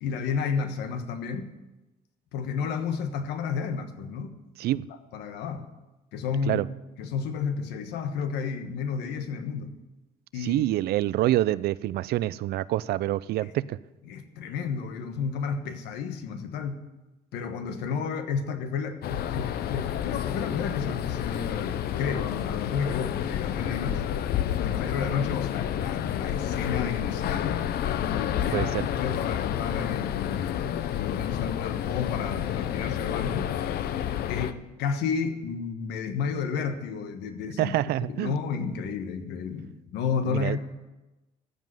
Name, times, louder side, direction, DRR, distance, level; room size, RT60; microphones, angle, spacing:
voice 1, 0.0-1.5 2.3-4.4 5.1-5.7 6.1-6.6 7.0-9.8 10.3-10.6 13.4-13.5 14.0-16.9 17.3-24.0 24.6-27.6 28.0-33.6 34.3-37.7 38.1-40.6, left 6 dB, 85° left, 8 dB, 1.3 m, -32 dB
voice 2, 10.4-13.8 28.5-28.9 37.6-38.3 40.3-40.6, right 15 dB, 70° right, 19 dB, 0.5 m, -26 dB
sound 1, 19.0-34.5, left 10 dB, 65° left, 0.7 m, -30 dB
14.5 x 5.3 x 9.5 m, 1.1 s
cardioid pair, 110°, 17 cm